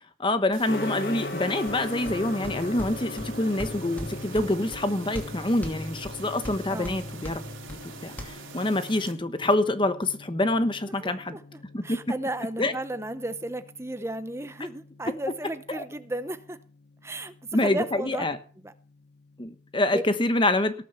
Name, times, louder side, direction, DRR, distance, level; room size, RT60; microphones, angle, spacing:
voice 1, 0.2-7.4 7.7-11.4 11.7-12.0 12.6-12.7 15.8-15.9 17.5-18.4 19.4-20.7, left 1 dB, 25° left, 1.0 m, -26 dB
sound 1, 0.5-9.1, right 5 dB, 85° right, 3.2 m, -45 dB
Gong, 0.7-19.6, left 2 dB, 55° left, 1.3 m, -41 dB
sound 2, 1.7-8.3, equal, 10° left, 2.4 m, -40 dB
voice 2, 6.7-7.0 11.0-16.6 17.0-18.3 18.6-18.7 19.9-20.0, right 1 dB, 15° right, 0.8 m, -34 dB
18.5 x 6.2 x 6.9 m
head